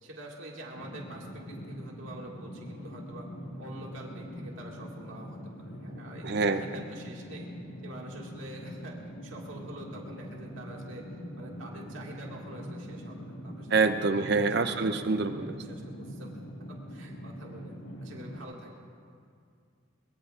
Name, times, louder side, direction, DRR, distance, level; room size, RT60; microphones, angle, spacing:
voice 1, 0.0-3.3 3.6-7.5 7.8-9.0 9.2-11.1 11.4-16.3 16.7-17.7 18.0-18.9, right 1 dB, 80° right, -2 dB, 2.0 m, -46 dB
sound 1, 0.7-18.4, equal, 90° left, 1.8 m, -43 dB
voice 2, 6.2-6.6 13.7-15.5, right 4 dB, 55° right, 8 dB, 0.7 m, -26 dB
23.0 x 21.5 x 2.5 m, 2.2 s
head